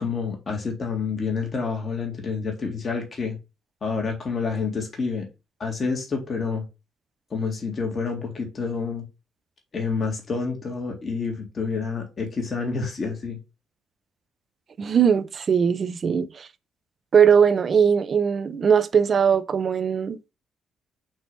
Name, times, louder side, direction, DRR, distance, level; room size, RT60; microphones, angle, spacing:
voice 1, 0.0-3.4 3.8-5.3 5.6-6.6 7.3-9.0 9.7-13.4, left 5 dB, 40° left, 2.0 m, -28 dB
voice 2, 14.8-16.5 17.1-20.2, right 7 dB, 45° right, 0.7 m, -20 dB
6.3 x 2.9 x 5.4 m
cardioid pair, 90°, 0 cm